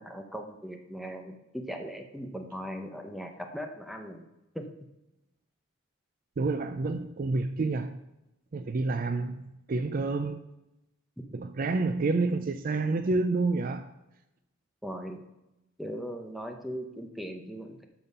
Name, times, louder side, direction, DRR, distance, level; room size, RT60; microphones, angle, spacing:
voice 1, 0.0-4.3 4.5-4.7 14.8-15.2 15.8-17.8, equal, ahead, 0.8 m, -39 dB
voice 2, 6.4-8.0 8.5-10.4 11.3-13.9, right 3 dB, 45° right, 0.4 m, -29 dB
12.5 x 4.2 x 5.4 m
head